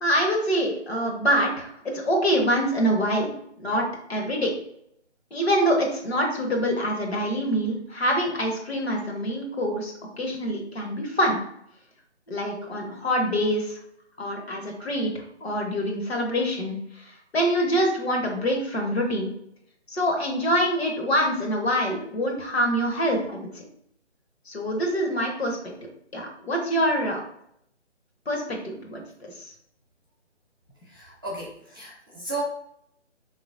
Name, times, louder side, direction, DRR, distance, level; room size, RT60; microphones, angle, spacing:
voice 1, 0.0-3.8 4.1-4.5 5.3-11.4 12.3-13.8 14.2-19.3 19.9-23.7 24.5-25.6 26.1-27.2 28.3-29.0 29.4-29.5, equal, 60° left, 1 dB, 1.2 m, -25 dB
voice 2, 30.9-32.4, right 3 dB, 20° right, -7 dB, 0.5 m, -34 dB
4.0 x 3.0 x 2.5 m, 0.71 s
figure-of-eight pair, 155°, 36 cm